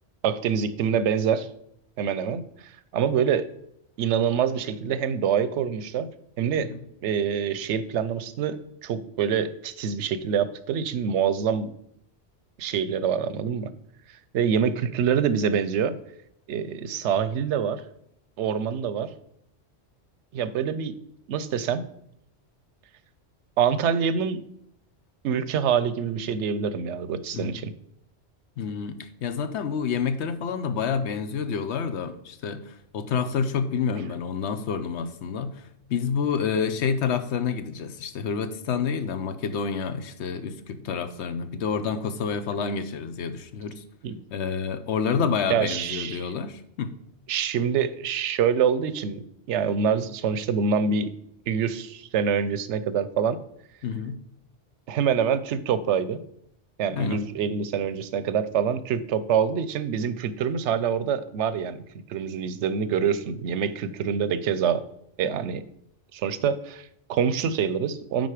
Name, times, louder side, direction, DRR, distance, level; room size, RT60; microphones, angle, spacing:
voice 1, 0.2-1.5 2.0-2.4 2.9-3.5 4.0-6.1 6.4-6.7 7.0-11.7 12.6-13.7 14.3-15.9 16.5-17.8 18.4-19.1 20.3-20.9 21.3-21.8 23.6-24.4 25.2-27.7 44.0-44.2 45.5-46.3 47.3-51.1 51.5-53.4 54.9-56.2 56.8-61.8 62.1-64.9 65.2-65.7 66.1-68.3, right 7 dB, 85° right, 14 dB, 0.9 m, -25 dB
voice 2, 28.6-43.8 44.3-46.9 53.8-54.2 56.9-57.2, left 6 dB, 80° left, 11 dB, 1.0 m, -28 dB
9.4 x 4.0 x 4.9 m, 0.73 s
omnidirectional pair, 1.1 m